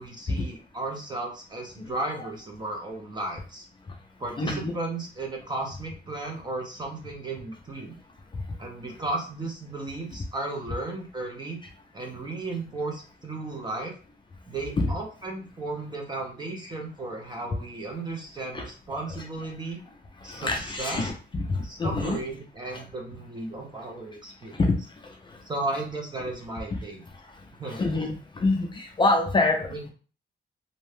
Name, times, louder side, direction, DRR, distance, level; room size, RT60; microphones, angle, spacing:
voice 1, 0.0-3.7 4.2-8.0 8.6-11.6 11.9-13.9 14.5-19.8 20.2-21.1 21.6-24.6 25.5-27.0 27.6-27.8 29.7-29.8, right 2 dB, 25° right, 1 dB, 0.6 m, -35 dB
voice 2, 4.4-4.7 14.8-14.9 18.5-19.2 19.6-19.7 20.2-22.2 22.7-22.8 24.5-24.7 25.0-25.4 26.7-26.8 27.1-29.9, left 2 dB, 25° left, 1 dB, 0.4 m, -27 dB
2.6 x 2.2 x 3.2 m, 0.38 s
wide cardioid pair, 170°, 18 cm